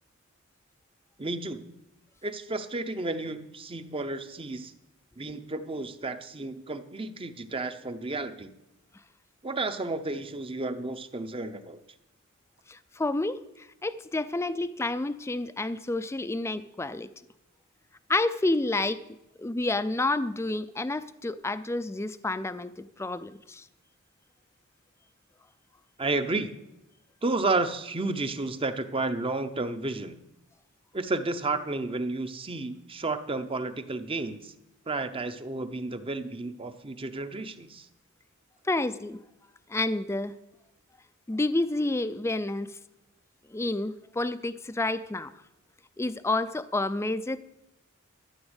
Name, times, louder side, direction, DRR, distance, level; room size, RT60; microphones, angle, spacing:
voice 1, 1.2-1.6 2.2-4.7 5.2-8.5 9.4-11.8 26.0-26.5 27.2-30.2 30.9-34.5 34.9-37.9, right 2 dB, 25° right, 9 dB, 0.7 m, -32 dB
voice 2, 12.7-13.4 13.8-17.1 18.1-19.0 19.4-23.6 38.7-39.2 39.7-40.3 41.3-42.7 43.5-45.3 46.0-47.4, left 2 dB, 10° left, 13 dB, 0.4 m, -29 dB
13.0 x 7.1 x 8.0 m, 0.89 s
head